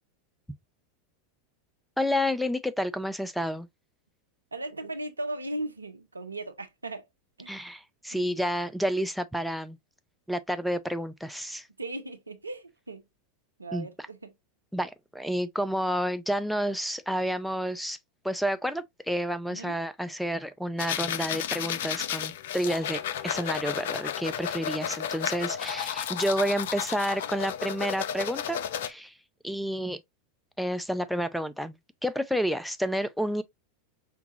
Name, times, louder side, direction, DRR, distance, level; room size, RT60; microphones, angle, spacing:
voice 1, 2.0-3.7 7.5-9.8 10.3-11.7 13.7-13.9 14.7-18.0 18.2-29.1 29.4-30.0 30.6-33.4, equal, ahead, 0.5 m, -30 dB
voice 2, 4.5-7.0 7.4-7.5 8.1-8.4 11.8-13.0 13.6-14.3 19.5-19.7, right 2 dB, 90° right, 0.6 m, -37 dB
sound 1, 20.8-28.9, left 9 dB, 65° left, 0.4 m, -33 dB
5.8 x 2.3 x 2.7 m
figure-of-eight pair, 90°, 0 cm